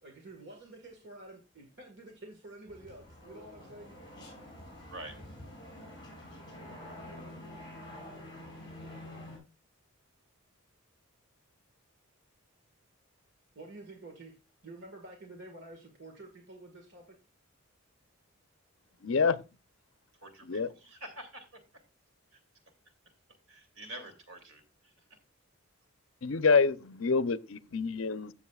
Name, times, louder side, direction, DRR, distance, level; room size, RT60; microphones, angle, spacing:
voice 1, 0.0-3.9 13.5-14.3 14.6-17.2, right 2 dB, 55° right, 1.6 m, -49 dB
sound 1, 2.7-9.4, left 1 dB, 20° left, 5.4 m, -47 dB
voice 2, 19.0-19.4 20.5-20.7 26.2-28.3, left 5 dB, 65° left, 0.6 m, -27 dB
voice 3, 20.2-21.5 22.3-22.4 23.5-24.9, right 1 dB, 85° right, 2.8 m, -46 dB
14.5 x 7.2 x 2.4 m
head